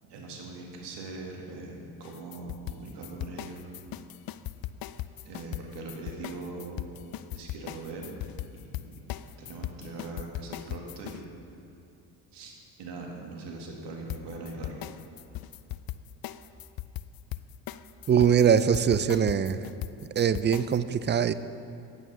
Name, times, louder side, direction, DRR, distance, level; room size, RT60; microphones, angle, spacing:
voice 1, 0.0-3.7 5.2-6.9 7.3-8.2 8.5-11.3 12.3-14.8, right 3 dB, 70° right, 0 dB, 2.1 m, -41 dB
sound 1, 2.0-11.2 14.1-20.8, left 14 dB, 55° left, 0.5 m, -38 dB
voice 2, 18.1-19.6 20.2-21.3, right 8 dB, 30° right, 14 dB, 0.3 m, -22 dB
9.1 x 8.9 x 5.6 m, 3.0 s
supercardioid pair, 80°, 43 cm